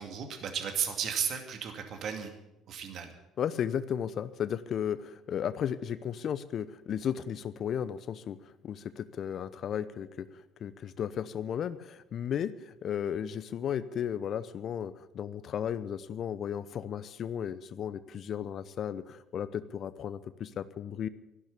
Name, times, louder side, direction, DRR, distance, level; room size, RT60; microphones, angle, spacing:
voice 1, 0.0-2.3 2.7-3.1, right 8 dB, 55° right, 5 dB, 2.3 m, -34 dB
voice 2, 3.4-10.3 10.6-21.1, left 8 dB, 50° left, 15 dB, 0.8 m, -34 dB
14.0 x 12.0 x 8.3 m, 0.92 s
hypercardioid pair, 55°, 0 cm